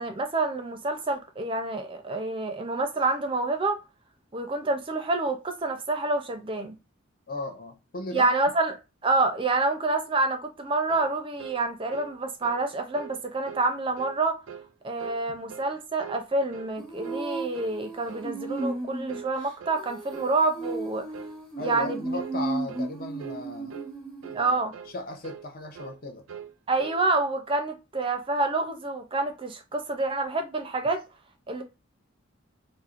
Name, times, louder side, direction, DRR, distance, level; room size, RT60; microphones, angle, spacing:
voice 1, 0.0-3.8 4.3-6.8 8.1-8.8 9.0-14.4 14.8-21.0 21.6-22.0 24.3-24.7 26.7-31.0 31.5-31.6, right 3 dB, 25° right, 0.4 m, -27 dB
voice 2, 7.3-8.3 15.3-15.4 21.6-23.8 24.3-26.2, left 2 dB, 45° left, 0.6 m, -37 dB
sound 1, 10.9-11.1 11.4-11.6 11.9-12.1 12.4-12.7 12.9-13.2 13.5-13.7 14.0-14.2 14.5-14.7 15.0-15.2 15.5-15.7 16.0-16.3 16.5-16.8 17.0-17.3 17.5-17.8 18.1-18.3 18.6-18.8 19.1-19.3 19.6-19.8 20.1-20.3 20.6-20.8 21.1-21.4 21.6-21.9 22.2-22.4 22.7-22.9 23.2-23.4 23.7-23.9 24.2-24.5 24.7-25.0 25.2-25.5 25.7-26.0 26.3-27.0, right 8 dB, 80° right, 0.4 m, -42 dB
Female singing, 16.8-24.5, right 2 dB, 5° left, 0.9 m, -35 dB
4.2 x 2.1 x 2.4 m
head